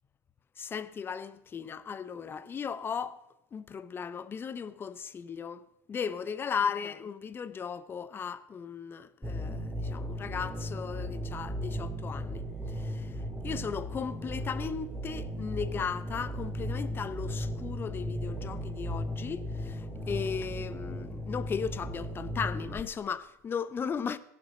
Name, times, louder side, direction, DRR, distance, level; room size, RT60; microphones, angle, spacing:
voice 1, 0.6-3.2 3.5-12.4 12.8-13.1 13.4-24.2, left 6 dB, 25° left, 0.6 m, -36 dB
sound 1, 9.2-22.8, equal, ahead, 2.4 m, -36 dB
17.0 x 6.1 x 4.9 m
supercardioid pair, 105°, 9 cm